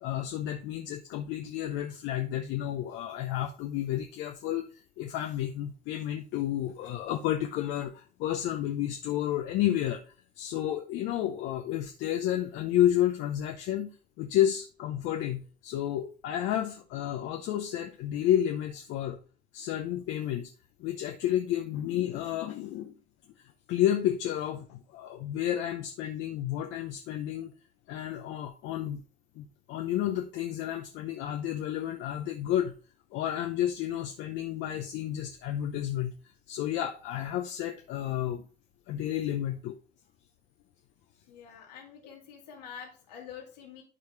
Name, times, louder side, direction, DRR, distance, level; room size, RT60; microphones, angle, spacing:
voice 1, 0.0-10.0 10.4-13.9 14.2-19.2 19.5-20.5 20.8-22.9 23.7-27.5 27.9-29.0 29.4-32.7 33.1-36.1 36.5-38.4 38.9-39.8, left 11 dB, 65° left, 4 dB, 0.8 m, -31 dB
voice 2, 41.3-43.8, left 8 dB, 85° left, -2 dB, 2.2 m, -46 dB
11.0 x 4.8 x 3.3 m, 0.37 s
hypercardioid pair, 50°, 20 cm